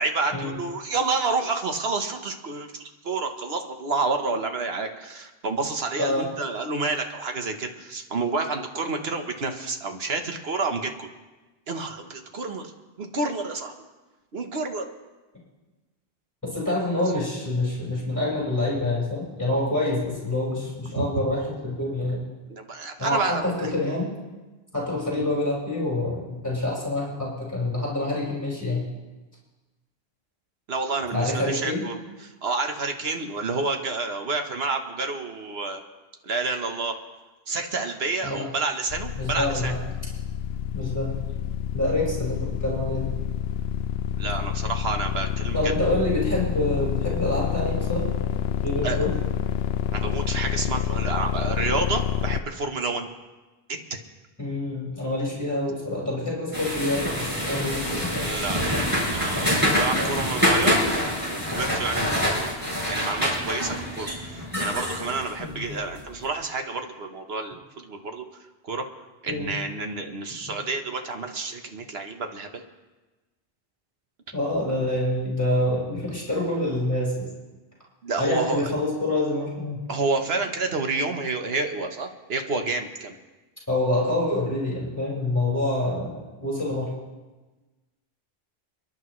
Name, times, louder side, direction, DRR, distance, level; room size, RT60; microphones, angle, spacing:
voice 1, 0.0-2.7 3.0-11.1 11.7-12.7 13.0-13.7 14.3-14.9 20.9-21.0 22.5-23.7 30.7-35.8 36.2-37.0 37.5-39.7 44.2-45.7 48.8-49.0 49.9-53.1 53.7-54.0 58.2-58.7 59.1-60.8 61.3-62.5 62.9-68.3 68.6-68.9 69.2-72.6 78.0-78.7 79.9-83.2, right 3 dB, 75° right, 5 dB, 1.4 m, -29 dB
voice 2, 6.0-6.3 16.5-22.2 23.0-24.1 24.7-28.9 31.1-31.8 38.2-38.5 39.1-39.8 40.7-41.1 41.7-43.1 45.5-48.1 48.6-49.1 54.4-58.1 60.0-60.2 65.4-65.6 69.3-69.5 74.3-77.3 78.2-79.8 83.7-86.9, left 1 dB, 15° left, -6 dB, 5.1 m, -26 dB
sound 1, 38.9-52.4, left 9 dB, 80° left, 0.8 m, -28 dB
sound 2, 56.5-66.1, equal, 20° right, 5.1 m, -26 dB
29.5 x 10.5 x 3.2 m, 1.2 s
omnidirectional pair, 1.1 m